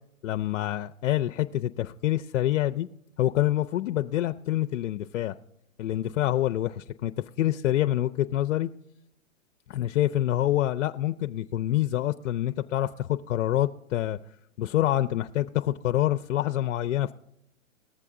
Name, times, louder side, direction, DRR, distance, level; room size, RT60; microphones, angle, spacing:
voice 1, 0.2-2.9 3.2-5.3 5.8-7.1 7.4-8.7 9.7-14.2 14.6-17.1, left 13 dB, 65° left, 8 dB, 0.5 m, -26 dB
19.0 x 6.8 x 3.7 m, 0.79 s
hypercardioid pair, 160°, 41 cm